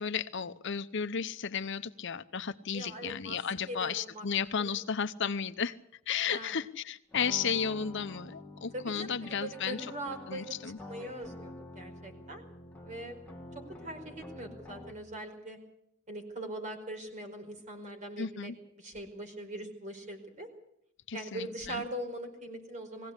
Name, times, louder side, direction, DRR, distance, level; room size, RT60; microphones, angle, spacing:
voice 1, 0.0-5.8 6.1-9.9 10.3-10.8 18.2-18.6 21.1-21.8, left 6 dB, 65° left, 11 dB, 0.8 m, -34 dB
voice 2, 2.7-3.4 3.7-4.2 4.6-4.7 6.3-6.5 8.7-10.6 10.9-12.4 12.8-13.2 13.5-15.6 16.1-18.5 18.8-20.5 21.1-23.1, right 1 dB, 40° right, 5 dB, 4.8 m, -41 dB
sound 1, 7.1-15.2, left 2 dB, 10° left, 2.1 m, -48 dB
21.0 x 16.5 x 8.2 m, 0.74 s
head